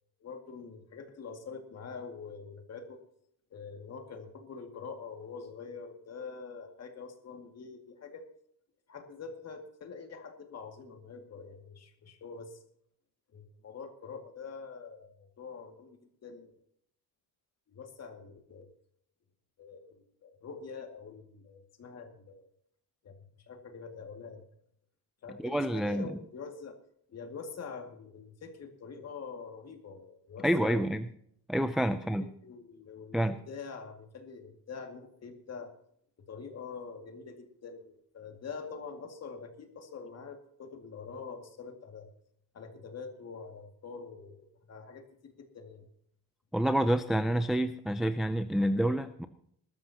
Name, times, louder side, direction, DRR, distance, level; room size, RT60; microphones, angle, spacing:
voice 1, 0.2-3.0 3.5-8.3 8.9-12.6 13.3-15.1 15.4-16.5 17.7-18.7 19.6-22.4 23.0-24.5 25.2-26.8 27.1-30.8 32.2-35.7 36.3-42.1 42.5-45.9, left 5 dB, 40° left, 5 dB, 2.2 m, -45 dB
voice 2, 25.4-26.1 30.4-31.1 31.5-32.3 33.1-33.4 46.5-49.3, right 1 dB, ahead, 9 dB, 0.4 m, -28 dB
20.5 x 13.0 x 2.8 m, 0.68 s
cardioid pair, 165°, 38 cm